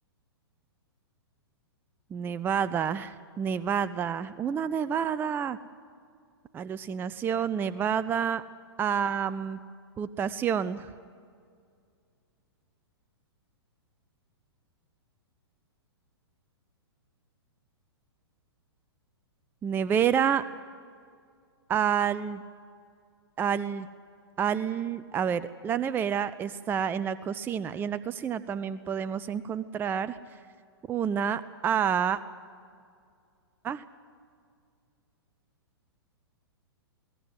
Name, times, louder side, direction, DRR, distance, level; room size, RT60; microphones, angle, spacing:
voice 1, 2.1-5.6 6.5-8.4 8.8-9.6 10.0-10.9 19.6-20.4 21.7-22.4 23.4-23.9 24.4-30.2 30.9-32.2 33.6-33.8, right 8 dB, 15° right, 15 dB, 0.5 m, -28 dB
22.0 x 17.5 x 7.9 m, 2.3 s
hypercardioid pair, 120°, 14 cm